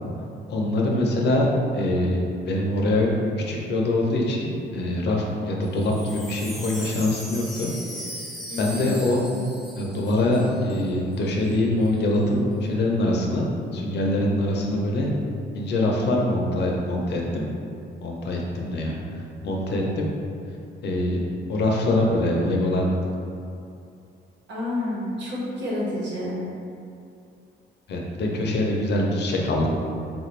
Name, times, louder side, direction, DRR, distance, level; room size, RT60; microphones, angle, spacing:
voice 1, 0.5-1.5 1.7-2.2 2.5-3.1 3.4-7.7 8.6-9.2 9.7-13.5 13.7-15.1 15.5-17.4 18.0-20.0 20.8-21.2 21.5-22.9 27.9-29.7, left 1 dB, 60° left, -1 dB, 0.7 m, -24 dB
Wind chime, 5.7-10.9 11.1-11.2 11.4-11.9, equal, ahead, 0.6 m, -38 dB
voice 2, 8.5-9.0 24.5-26.4, left 1 dB, 65° right, -6 dB, 1.2 m, -29 dB
3.7 x 2.5 x 3.1 m, 2.5 s
cardioid pair, 90°, 20 cm